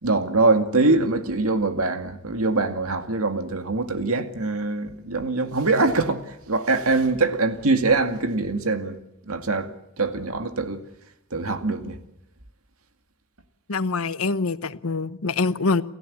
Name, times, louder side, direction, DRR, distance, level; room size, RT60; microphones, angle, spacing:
voice 1, 0.0-9.0 9.3-10.8 11.3-12.0, right 3 dB, 85° right, 2.2 m, -23 dB
voice 2, 13.7-15.8, left 3 dB, 85° left, 1.0 m, -24 dB
29.0 x 14.5 x 8.4 m
head